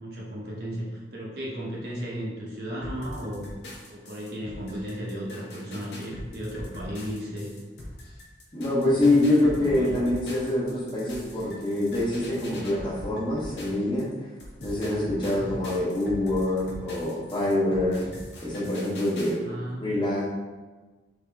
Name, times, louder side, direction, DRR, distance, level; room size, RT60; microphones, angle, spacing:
voice 1, 0.0-3.5 3.9-7.6 9.2-9.3 9.6-10.0 15.3-15.5 19.4-20.0, equal, 55° right, -4 dB, 0.9 m, -35 dB
sound 1, 2.8-14.0 14.4-19.3, left 1 dB, 65° left, 0.7 m, -41 dB
voice 2, 8.5-14.1 14.6-18.0 18.4-19.4 19.8-20.3, left 1 dB, 25° left, -7 dB, 0.9 m, -25 dB
3.5 x 2.8 x 3.4 m, 1.3 s
head